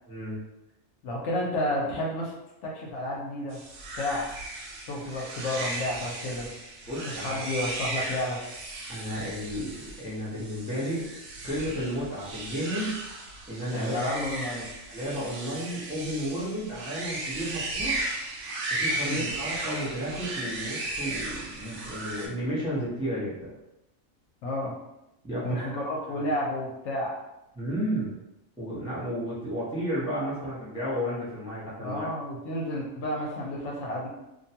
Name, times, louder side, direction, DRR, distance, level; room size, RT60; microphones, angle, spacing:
voice 1, 0.1-0.4 6.9-7.4 8.9-11.1 11.4-13.0 13.5-14.0 14.9-18.1 18.7-23.5 25.2-25.7 26.1-26.2 27.5-28.1 28.6-32.1, equal, 5° right, -8 dB, 0.6 m, -32 dB
voice 2, 1.0-2.3 2.6-3.6 4.0-4.3 4.8-6.5 7.0-8.4 13.7-14.7 19.1-19.3 24.4-24.7 25.4-27.1 31.8-34.1, left 1 dB, 65° left, -3 dB, 0.8 m, -31 dB
sound 1, 3.5-22.3, right 2 dB, 70° right, 0.9 m, -35 dB
2.5 x 2.2 x 2.7 m, 0.90 s
omnidirectional pair, 1.4 m